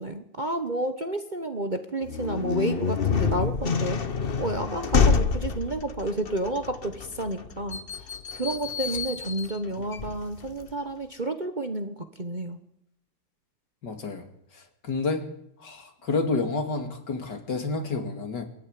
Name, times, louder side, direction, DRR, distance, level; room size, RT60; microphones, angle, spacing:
voice 1, 0.0-4.0 4.4-7.8 8.3-12.6, right 1 dB, 30° right, 7 dB, 1.2 m, -30 dB
sound 1, 2.0-10.7, left 5 dB, 35° left, 1.0 m, -28 dB
voice 2, 13.8-14.2 14.8-15.3 15.6-18.4, left 3 dB, 65° left, 6 dB, 3.1 m, -29 dB
22.0 x 14.5 x 9.7 m, 0.76 s
omnidirectional pair, 2.0 m